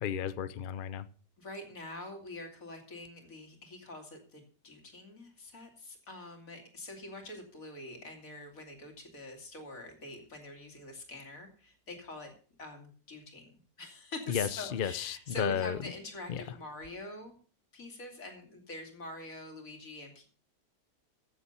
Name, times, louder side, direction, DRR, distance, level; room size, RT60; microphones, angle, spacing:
voice 1, 0.0-1.1 14.3-15.8 16.3-16.4, left 8 dB, 75° left, 0.4 m, -33 dB
voice 2, 1.4-12.3 12.6-13.5 13.8-17.4 17.7-20.2, left 2 dB, 50° left, 2.9 m, -45 dB
15.0 x 7.1 x 5.5 m
omnidirectional pair, 1.8 m